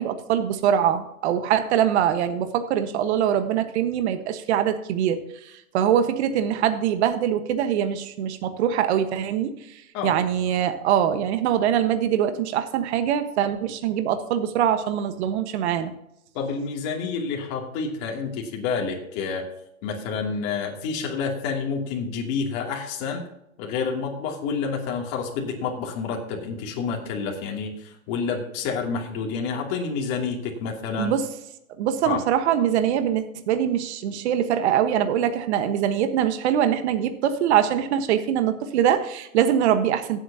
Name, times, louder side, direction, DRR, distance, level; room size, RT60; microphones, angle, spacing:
voice 1, 0.0-9.5 10.0-15.9 31.0-31.2 31.8-40.2, right 9 dB, 50° right, 9 dB, 1.4 m, -23 dB
voice 2, 16.3-19.4 19.8-23.2 23.6-31.2 32.0-32.2, left 5 dB, 35° left, 0 dB, 2.7 m, -29 dB
17.0 x 8.1 x 2.8 m, 0.81 s
hypercardioid pair, 135°, 42 cm